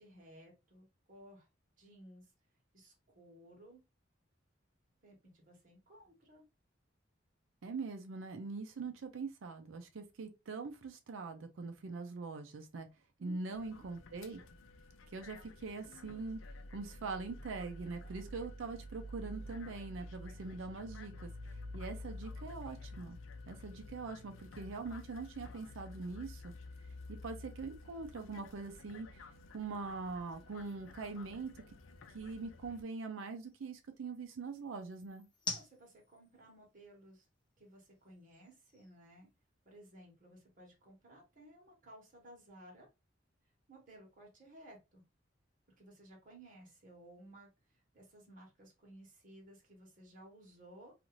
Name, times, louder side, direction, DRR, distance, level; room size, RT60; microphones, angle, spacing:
voice 1, 0.0-1.5 1.8-2.3 2.7-3.8 5.0-6.4 13.2-13.9 18.0-18.2 35.5-37.3 37.6-39.3 39.6-42.9 43.7-45.0 45.8-50.9, right 1 dB, 45° right, 1.1 m, -57 dB
voice 2, 7.6-12.9 13.2-14.4 15.1-16.4 16.7-21.3 21.7-23.2 23.5-26.5 27.2-29.3 29.5-31.5 32.1-35.3, right 4 dB, 85° right, 0.4 m, -43 dB
sound 1, 13.5-32.8, left 2 dB, 85° left, 0.4 m, -50 dB
sound 2, 25.7-39.9, left 3 dB, 25° left, 0.8 m, -53 dB
2.5 x 2.4 x 3.0 m
head